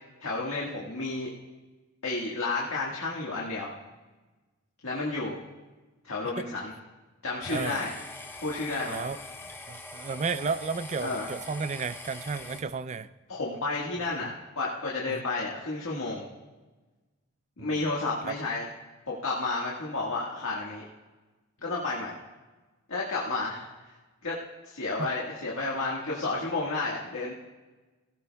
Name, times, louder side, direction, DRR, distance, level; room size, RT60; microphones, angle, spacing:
voice 1, 0.2-1.3 2.0-3.7 4.8-5.4 6.0-6.7 7.2-7.9 8.4-9.1 11.0-11.3 13.3-16.2 17.6-18.6 19.1-20.8 21.6-22.1 22.9-23.6 24.2-24.3 24.6-27.3, left 3 dB, 80° left, -4 dB, 1.6 m, -31 dB
sound 1, 7.4-12.6, left 2 dB, 10° left, 0.6 m, -43 dB
voice 2, 7.5-7.9 8.9-9.2 9.7-13.1 15.1-15.2 17.6-17.7 18.3-18.4 25.0-25.1, right 5 dB, 30° right, 14 dB, 0.3 m, -33 dB
17.0 x 16.0 x 2.3 m, 1.2 s
head